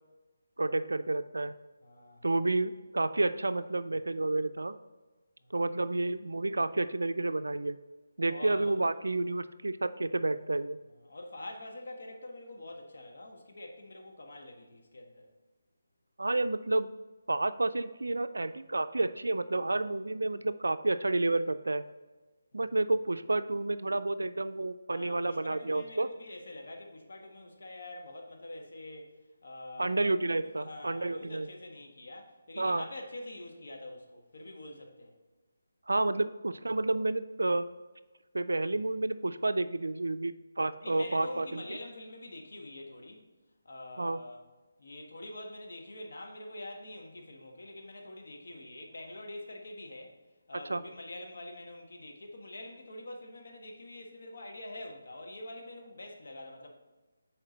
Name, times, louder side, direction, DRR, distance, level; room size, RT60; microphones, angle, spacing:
voice 1, 0.6-1.5 2.2-4.8 5.5-7.8 8.2-10.8 16.2-16.9 17.3-21.8 22.5-26.1 29.8-31.5 32.6-32.8 35.9-37.6 38.3-41.6 44.0-44.2 50.7-50.8, right 2 dB, 85° right, 12 dB, 0.3 m, -30 dB
voice 2, 1.8-2.4 5.4-5.5 8.3-8.8 11.0-15.3 22.5-22.8 24.9-29.2 29.4-35.1 40.8-43.2 43.6-44.4 44.8-50.2 50.5-56.7, left 1 dB, 65° left, 1 dB, 1.3 m, -45 dB
6.5 x 4.4 x 3.9 m, 1.2 s
figure-of-eight pair, 155°, 0 cm